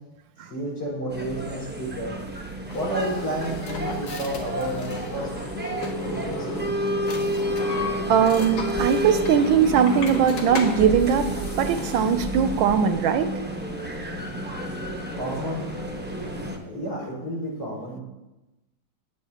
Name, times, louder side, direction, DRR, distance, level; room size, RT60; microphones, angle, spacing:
voice 1, 0.4-2.2 2.7-5.3 6.1-6.9 15.1-15.7 16.6-18.0, equal, 60° left, -5 dB, 5.4 m, -31 dB
sound 1, 1.1-16.6, right 1 dB, 10° right, 0.4 m, -31 dB
sound 2, 2.7-12.1, left 2 dB, 75° left, 2.0 m, -35 dB
voice 2, 8.1-13.3, right 7 dB, 80° right, 10 dB, 1.3 m, -20 dB
17.0 x 9.0 x 2.8 m, 1.0 s
omnidirectional pair, 2.2 m